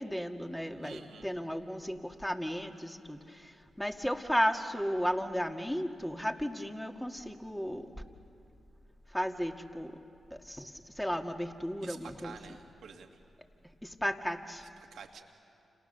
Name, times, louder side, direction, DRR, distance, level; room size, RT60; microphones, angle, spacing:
voice 1, 0.0-7.9 9.1-10.0 10.3-12.4 13.8-14.6, equal, 5° left, 4 dB, 2.2 m, -34 dB
voice 2, 0.8-1.3 11.8-13.2 14.6-15.2, right 6 dB, 75° right, 4 dB, 2.0 m, -49 dB
30.0 x 28.0 x 6.8 m, 2.6 s
supercardioid pair, 40°, 0 cm